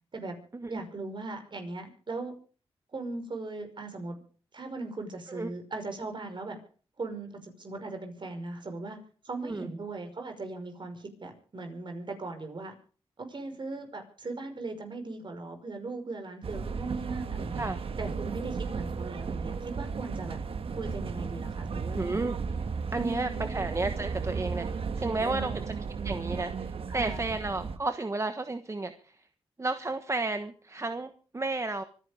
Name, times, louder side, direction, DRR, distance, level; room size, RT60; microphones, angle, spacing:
voice 1, 0.7-2.3 2.9-4.2 4.5-6.6 7.0-9.0 9.2-12.7 13.2-17.7 18.0-20.4 20.7-22.3 23.0-23.5 25.2-25.6 26.9-27.2, right 3 dB, 50° right, 6 dB, 5.5 m, -38 dB
sound 1, 16.4-27.8, right 5 dB, 70° right, 1.5 m, -34 dB
voice 2, 21.9-22.3 22.9-25.7 26.0-29.2 29.6-31.8, right 3 dB, 30° right, 9 dB, 1.2 m, -32 dB
24.5 x 10.5 x 5.1 m, 0.41 s
cardioid pair, 75°, 10 cm